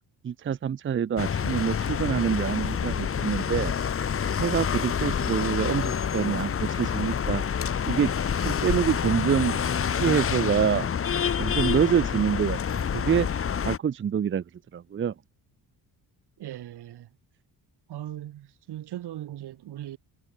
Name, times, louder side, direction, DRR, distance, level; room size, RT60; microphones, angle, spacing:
voice 1, 0.2-3.7 4.4-7.4 7.9-8.1 8.4-9.6 9.9-10.9 11.4-13.3 13.6-14.4 14.7-15.1, right 8 dB, 30° right, 0.7 m, -26 dB
sound 1, 1.2-13.8, left 7 dB, 35° left, 1.5 m, -27 dB
voice 2, 16.4-17.1 17.9-20.0, right 13 dB, 80° right, 7.1 m, -38 dB
cardioid pair, 155°, 39 cm